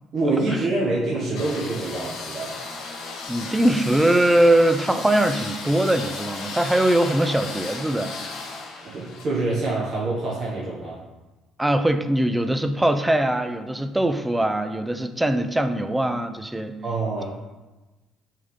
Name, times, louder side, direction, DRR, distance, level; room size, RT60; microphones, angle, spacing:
voice 1, 0.1-2.6 8.8-11.0 16.8-17.2, right 2 dB, 45° right, -6 dB, 1.4 m, -26 dB
sound 1, 1.3-9.2, left 3 dB, 60° left, 1.0 m, -35 dB
voice 2, 3.3-8.2 11.6-16.8, right 1 dB, 10° right, 8 dB, 0.6 m, -21 dB
5.3 x 3.6 x 5.4 m, 1.1 s
figure-of-eight pair, 50°, 0 cm